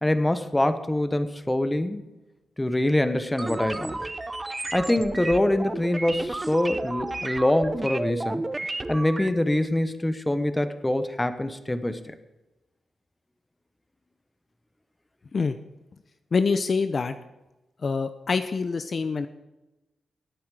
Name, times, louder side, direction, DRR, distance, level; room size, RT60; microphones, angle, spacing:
voice 1, 0.0-2.1 2.6-4.0 4.7-8.4 8.9-12.2, left 1 dB, 10° left, 11 dB, 1.1 m, -24 dB
sound 1, 3.4-9.3, right 2 dB, 20° right, 0.7 m, -32 dB
voice 2, 16.3-17.1 17.8-19.3, left 4 dB, 45° left, 10 dB, 0.7 m, -25 dB
18.5 x 8.6 x 4.9 m, 1.0 s
cardioid pair, 80°, 0 cm